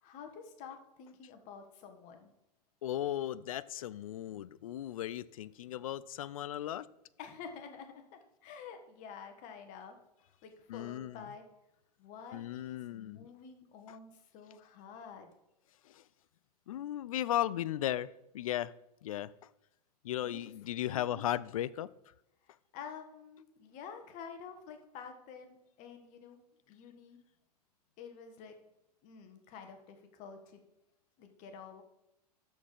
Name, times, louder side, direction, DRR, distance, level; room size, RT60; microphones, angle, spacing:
voice 1, 0.0-2.3 7.2-11.4 12.0-15.3 20.2-20.4 20.9-21.2 22.7-26.4 26.7-27.2 28.0-28.5 29.0-30.6 31.2-31.8, left 6 dB, 40° left, 1.5 m, -49 dB
voice 2, 2.8-6.9 10.7-11.2 12.3-13.3 15.9-16.0 16.7-18.7 19.0-19.3 20.0-21.9, left 12 dB, 55° left, 0.4 m, -36 dB
13.0 x 4.6 x 5.3 m
figure-of-eight pair, 90°, 21 cm